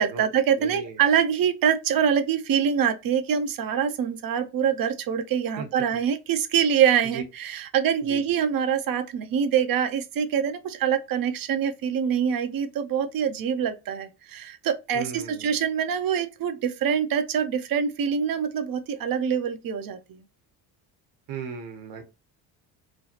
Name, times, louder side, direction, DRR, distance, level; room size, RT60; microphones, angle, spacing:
voice 1, 0.0-20.2, right 8 dB, 45° right, 0.7 m, -25 dB
voice 2, 0.5-1.0 5.6-5.7 7.0-7.2 8.0-8.3 14.9-15.6 21.3-22.0, right 5 dB, 60° right, 1.2 m, -37 dB
3.2 x 2.3 x 2.8 m
hypercardioid pair, 60°, 50 cm